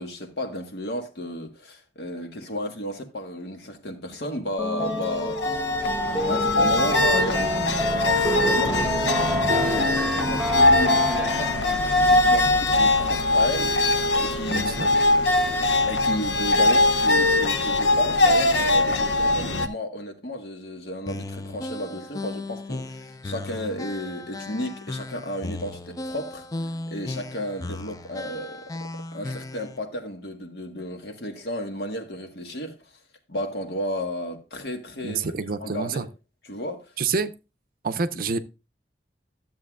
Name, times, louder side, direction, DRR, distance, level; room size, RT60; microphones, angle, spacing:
voice 1, 0.0-5.4 6.2-13.8 14.2-14.7 15.8-32.8 33.3-35.3 35.6-36.1 36.5-36.8, left 1 dB, 65° left, 1.6 m, -33 dB
sound 1, 4.6-11.9, equal, ahead, 0.9 m, -27 dB
Chinese Violin - The Enchanted Sound of the Erhu, 4.8-19.7, left 2 dB, 85° left, 0.8 m, -22 dB
voice 2, 14.5-14.9 35.0-36.0 37.0-37.3 37.8-38.4, right 4 dB, 55° right, 0.6 m, -27 dB
sound 2, 21.1-29.8, left 2 dB, 20° left, 0.4 m, -36 dB
13.0 x 7.6 x 2.4 m
head